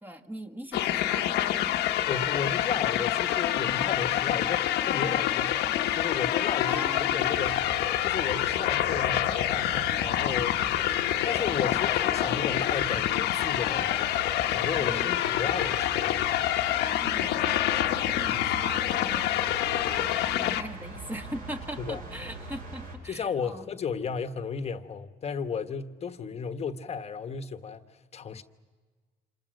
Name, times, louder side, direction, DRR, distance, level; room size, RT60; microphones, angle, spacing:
voice 1, 0.0-1.7 6.6-7.4 14.8-15.1 16.8-19.4 20.0-23.7, equal, 10° right, 1.8 m, -41 dB
sound 1, 0.7-20.6, left 12 dB, 80° left, 1.1 m, -27 dB
voice 2, 2.1-7.7 8.0-10.6 11.2-14.1 14.5-16.3 18.3-18.6 21.8-22.0 23.0-27.8 28.1-28.4, left 6 dB, 40° left, 1.2 m, -34 dB
sound 2, 7.2-23.0, right 2 dB, 60° right, 7.9 m, -43 dB
28.0 x 27.5 x 6.5 m
cardioid pair, 110°, 17 cm